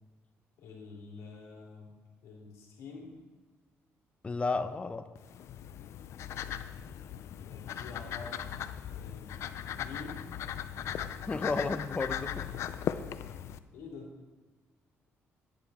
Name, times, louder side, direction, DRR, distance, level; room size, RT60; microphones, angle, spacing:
voice 1, 0.6-1.9 2.2-3.1 7.4-8.5 8.9-9.5 9.8-10.3 13.7-14.1, left 4 dB, 85° left, -2 dB, 3.6 m, -47 dB
voice 2, 4.2-5.1 11.3-12.5, left 3 dB, 25° left, 11 dB, 0.8 m, -32 dB
sound 1, 5.2-13.6, left 9 dB, 70° left, 0.5 m, -38 dB
12.5 x 11.0 x 4.3 m, 1.3 s
cardioid pair, 105°, 5 cm